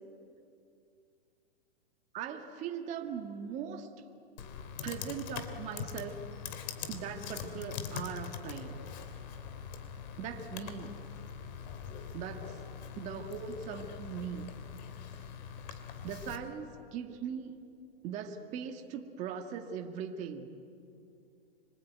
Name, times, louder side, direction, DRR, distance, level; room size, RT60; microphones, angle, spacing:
voice 1, 2.1-3.9 4.8-6.2 6.9-8.9 10.2-11.0 12.1-12.6 13.0-14.5 16.0-17.6 18.0-20.5, right 7 dB, 25° right, 4 dB, 1.7 m, -40 dB
Computer keyboard, 4.4-16.4, left 7 dB, 45° left, 2.9 m, -43 dB
26.0 x 24.5 x 9.3 m, 2.5 s
hypercardioid pair, 155°, 31 cm